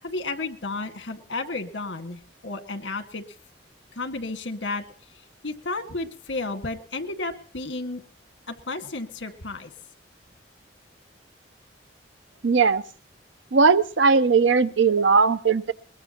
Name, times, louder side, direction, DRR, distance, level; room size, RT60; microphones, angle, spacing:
voice 1, 0.0-3.2 3.9-4.8 5.4-8.0 8.5-9.7, left 3 dB, 75° left, 7 dB, 1.8 m, -32 dB
voice 2, 12.4-12.8 13.5-15.7, right 5 dB, 80° right, 13 dB, 0.8 m, -19 dB
22.0 x 20.5 x 2.9 m, 0.40 s
head